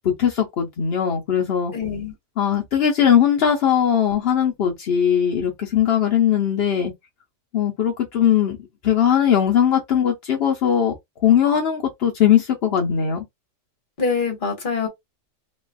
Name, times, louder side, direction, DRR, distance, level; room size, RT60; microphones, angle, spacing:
voice 1, 0.2-1.7 2.4-6.9 7.5-8.6 8.8-10.9 11.2-13.2, left 9 dB, 65° left, 0.6 m, -19 dB
voice 2, 1.7-2.1 14.0-14.9, left 5 dB, 35° left, 1.0 m, -24 dB
3.3 x 2.3 x 2.2 m
omnidirectional pair, 1.8 m